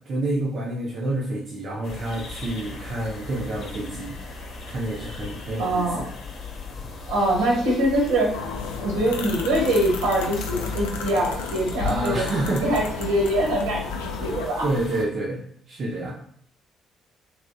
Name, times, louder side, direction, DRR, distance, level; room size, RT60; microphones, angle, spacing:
voice 1, 0.1-4.2 4.7-6.1 11.8-12.7 14.6-16.2, right 2 dB, 50° right, -3 dB, 0.7 m, -28 dB
sound 1, 1.8-15.0, left 4 dB, 55° left, 0.8 m, -38 dB
voice 2, 5.6-6.1 7.1-8.4 8.8-14.7, right 1 dB, 70° right, -3 dB, 1.1 m, -24 dB
sound 2, 8.3-14.4, left 5 dB, 80° left, 0.4 m, -32 dB
3.4 x 2.9 x 2.7 m, 0.63 s
figure-of-eight pair, 45°, 0 cm